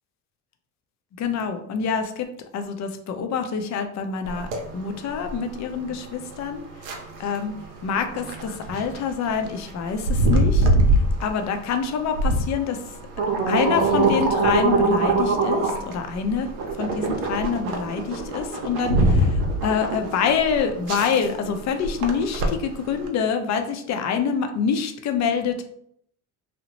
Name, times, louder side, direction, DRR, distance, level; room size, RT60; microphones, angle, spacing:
voice 1, 1.2-4.5 4.7-6.6 7.2-7.5 7.8-10.7 10.9-12.8 13.5-16.5 16.8-25.6, left 6 dB, 40° left, 7 dB, 0.5 m, -26 dB
sound 1, 4.3-23.1, right 2 dB, 85° right, 0.7 m, -24 dB
2.8 x 2.0 x 2.9 m, 0.69 s
supercardioid pair, 85°, 42 cm